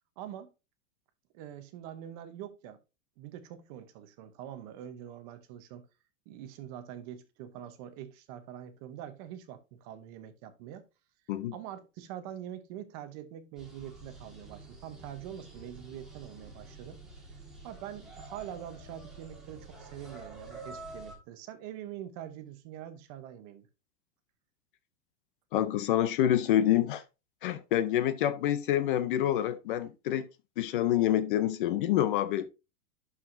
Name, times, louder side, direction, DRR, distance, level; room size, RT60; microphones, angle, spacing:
voice 1, 0.2-0.5 1.3-2.8 3.2-5.9 6.3-10.8 11.5-17.0 17.6-23.7, right 11 dB, 30° right, 0.8 m, -44 dB
sound 1, 13.6-21.2, right 2 dB, ahead, 1.5 m, -48 dB
voice 2, 25.5-27.0 27.4-30.3 30.6-32.5, left 11 dB, 40° left, 0.6 m, -27 dB
11.5 x 4.8 x 2.6 m
supercardioid pair, 175°, 39 cm